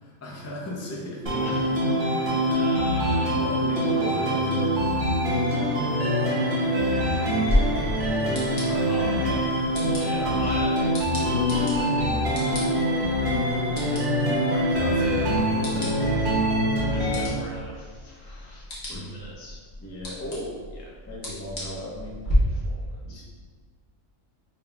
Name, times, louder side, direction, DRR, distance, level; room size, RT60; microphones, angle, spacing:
voice 1, 0.0-1.4 3.3-4.8 8.6-9.3 9.7-10.5 13.7-14.1 14.5-16.2 18.9-19.1 19.8-20.6 21.1-22.2 23.0-23.2, left 1 dB, 20° left, -4 dB, 0.4 m, -36 dB
sound 1, 1.3-17.3, equal, 50° right, 0.9 m, -24 dB
voice 2, 1.4-1.7 2.0-2.2 2.5-3.4 6.4-6.5 6.9-7.2 8.9-9.5 9.9-13.1 13.6-14.2 16.8-19.6 20.3-20.4 20.7-20.8 21.7-21.8 22.3-23.2, left 1 dB, 85° left, -3 dB, 1.3 m, -41 dB
sound 2, 7.5-22.3, left 1 dB, 40° left, 1.0 m, -35 dB
4.9 x 2.8 x 2.3 m, 1.5 s
omnidirectional pair, 1.3 m